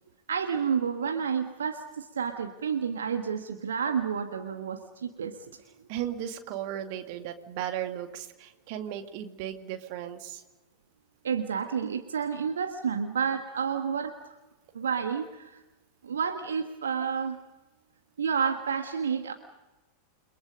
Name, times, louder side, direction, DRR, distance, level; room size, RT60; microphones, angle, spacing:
voice 1, 0.3-5.5 5.8-5.9 11.2-14.4 14.7-15.6 16.0-17.4 18.2-19.3, right 6 dB, 65° right, 6 dB, 1.4 m, -30 dB
voice 2, 5.9-10.4, right 11 dB, 45° right, 7 dB, 2.2 m, -36 dB
29.5 x 23.0 x 5.3 m, 1.1 s
figure-of-eight pair, 90°, 0 cm